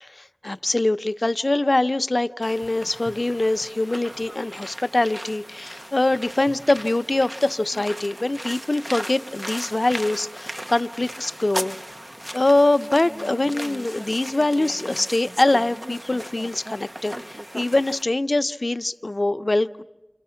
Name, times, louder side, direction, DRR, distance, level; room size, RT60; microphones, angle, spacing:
voice 1, 0.0-11.8 12.3-19.8, left 2 dB, 55° left, 10 dB, 0.8 m, -23 dB
sound 1, 2.4-18.0, equal, 20° right, 0.9 m, -37 dB
29.5 x 26.0 x 5.7 m, 1.1 s
wide cardioid pair, 45°, 0 cm